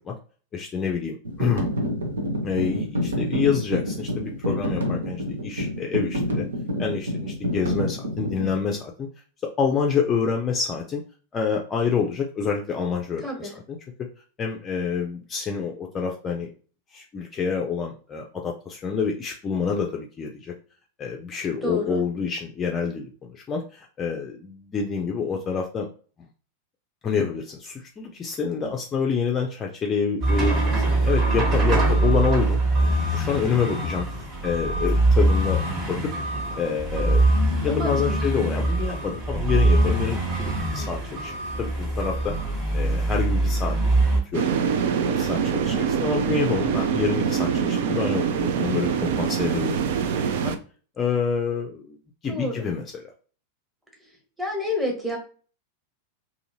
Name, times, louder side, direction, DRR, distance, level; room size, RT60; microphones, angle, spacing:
voice 1, 0.5-1.7 2.4-6.4 6.8-9.1 9.4-11.0 11.3-13.5 14.4-16.5 16.9-20.5 21.0-25.9 27.0-32.6 33.1-34.1 34.4-36.1 36.6-41.3 41.6-42.3 42.7-43.8 44.3-44.6 45.0-50.5 51.0-52.0 52.2-52.8, left 6 dB, 25° left, 1 dB, 0.5 m, -27 dB
sound 1, 1.2-8.6, equal, 70° right, 0.7 m, -28 dB
voice 2, 13.2-13.6 21.6-22.0 37.7-38.2 52.3-52.7 54.4-55.2, left 1 dB, 10° right, 0 dB, 1.2 m, -29 dB
sound 2, 30.2-44.2, right 2 dB, 35° right, 1.2 m, -23 dB
sound 3, 44.3-50.6, right 7 dB, 55° right, 0.4 m, -24 dB
2.7 x 2.6 x 2.8 m, 0.40 s
figure-of-eight pair, 90°, 0 cm